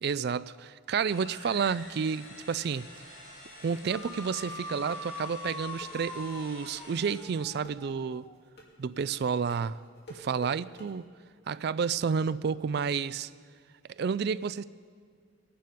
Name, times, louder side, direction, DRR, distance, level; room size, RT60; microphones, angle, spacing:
voice 1, 0.0-2.9 3.6-8.3 8.8-9.8 10.1-11.1 11.5-13.3 14.0-14.6, right 6 dB, 50° right, 0.3 m, -30 dB
sound 1, 1.0-7.7, left 1 dB, 65° left, 3.9 m, -49 dB
sound 2, 3.4-10.9, equal, 50° left, 2.6 m, -50 dB
sound 3, 3.9-8.4, left 2 dB, 15° left, 0.5 m, -43 dB
20.5 x 9.1 x 5.2 m
head